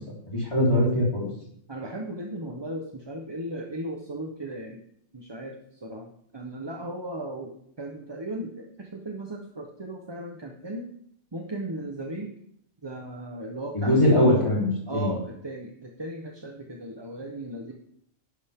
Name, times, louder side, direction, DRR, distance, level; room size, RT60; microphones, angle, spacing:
voice 1, 0.3-1.3 13.7-15.1, left 1 dB, 20° left, -5 dB, 4.1 m, -21 dB
voice 2, 1.7-4.8 5.1-10.9 11.3-12.3 12.8-14.2 14.9-17.7, right 1 dB, 20° right, 2 dB, 1.0 m, -36 dB
11.5 x 11.0 x 3.7 m, 0.70 s
omnidirectional pair, 1.3 m